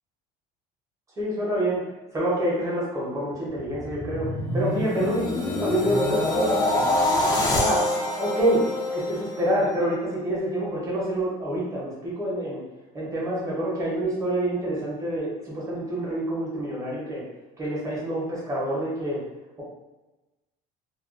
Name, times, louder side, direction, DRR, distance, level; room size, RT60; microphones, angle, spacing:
voice 1, 1.2-1.8 2.1-6.5 7.4-7.9 8.2-12.6 12.9-17.2 17.6-19.2, right 1 dB, 15° right, -7 dB, 0.8 m, -27 dB
sound 1, 3.6-9.8 10.3-10.5, left 1 dB, 20° left, 0.3 m, -26 dB
2.4 x 2.2 x 2.4 m, 1.1 s
cardioid pair, 155°, 18 cm